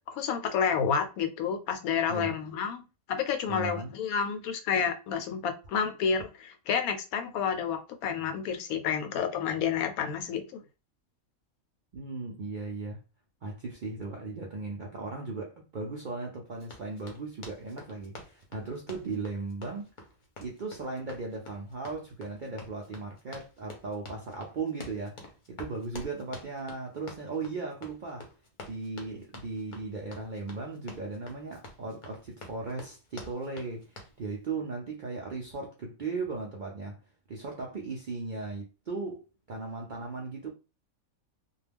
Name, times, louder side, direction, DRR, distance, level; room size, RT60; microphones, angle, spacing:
voice 1, 0.1-10.6, left 7 dB, 90° left, 1.0 m, -30 dB
voice 2, 3.5-3.9 11.9-13.0 13.4-19.9 20.4-28.3 28.7-37.0 37.3-39.2 39.5-40.5, right 3 dB, 65° right, 0.4 m, -37 dB
Run, 16.6-34.2, left 2 dB, 45° left, 0.7 m, -48 dB
2.3 x 2.2 x 3.3 m
omnidirectional pair, 1.5 m